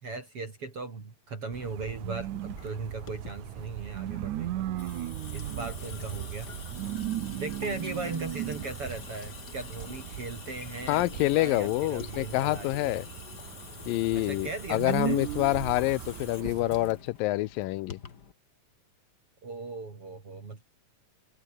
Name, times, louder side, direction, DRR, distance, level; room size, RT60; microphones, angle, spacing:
voice 1, 0.0-4.7 5.3-6.5 7.4-13.0 14.1-15.2 19.4-20.6, right 3 dB, 40° right, 4.5 m, -38 dB
sound 1, 1.5-16.9, right 13 dB, 65° right, 2.4 m, -37 dB
Water tap faucet / Sink (filling or washing) / Drip, 2.3-18.3, left 6 dB, 35° left, 1.9 m, -46 dB
voice 2, 10.9-13.1 13.9-18.0, left 18 dB, 90° left, 2.4 m, -27 dB
omnidirectional pair, 4.0 m